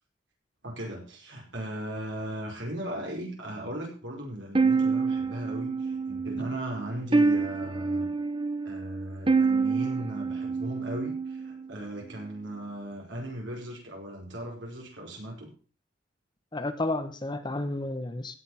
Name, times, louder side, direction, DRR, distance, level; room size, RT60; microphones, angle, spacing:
voice 1, 0.6-8.1 8.6-15.5, right 1 dB, 70° right, 0 dB, 5.2 m, -37 dB
sound 1, 4.5-11.7, right 4 dB, 25° right, 0.9 m, -27 dB
voice 2, 16.5-18.4, left 2 dB, 25° left, 9 dB, 1.0 m, -31 dB
16.5 x 6.5 x 5.7 m, 0.37 s
head